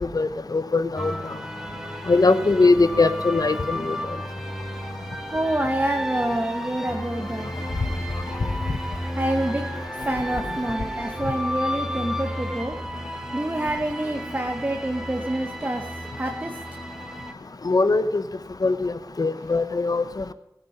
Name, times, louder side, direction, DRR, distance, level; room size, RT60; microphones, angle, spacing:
voice 1, 0.1-1.1 2.1-4.0 17.6-18.2 18.6-20.0, left 3 dB, 55° left, 13 dB, 0.8 m, -21 dB
sound 1, 1.0-17.3, equal, 5° right, 1.8 m, -33 dB
voice 2, 5.3-7.5 9.2-12.7 13.3-15.8 16.2-16.5, right 1 dB, 25° right, 3 dB, 1.2 m, -27 dB
16.0 x 8.8 x 5.4 m, 0.85 s
wide cardioid pair, 60°, 8 cm